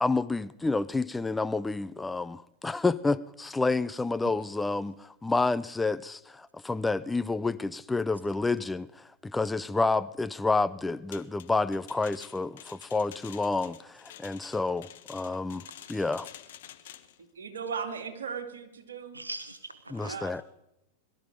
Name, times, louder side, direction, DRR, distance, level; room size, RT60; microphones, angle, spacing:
voice 1, 0.0-16.3 19.9-20.4, left 3 dB, 10° left, 0.5 m, -29 dB
sound 1, 11.1-17.2, left 12 dB, 55° left, 1.2 m, -49 dB
voice 2, 15.7-16.3 19.1-20.4, right 2 dB, 80° right, 0.9 m, -43 dB
voice 3, 17.4-19.2 20.0-20.3, right 6 dB, 65° right, 2.3 m, -37 dB
21.5 x 13.0 x 5.2 m
figure-of-eight pair, 90°, 0 cm